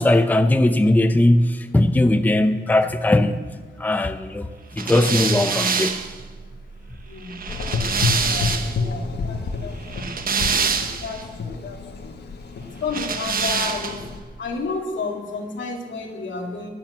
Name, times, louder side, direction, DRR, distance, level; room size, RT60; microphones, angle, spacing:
voice 1, 0.0-3.3 3.8-6.0 7.6-7.7, left 1 dB, 10° left, 0.6 m, -19 dB
sound 1, 4.8-8.9 9.8-11.2 12.9-14.1, right 5 dB, 50° right, 1.2 m, -25 dB
voice 2, 6.4-16.7, left 4 dB, 85° left, 2.5 m, -33 dB
Gurgling / Engine, 7.5-14.2, left 4 dB, 65° left, 1.5 m, -29 dB
20.5 x 8.8 x 6.7 m
wide cardioid pair, 165°, 19 cm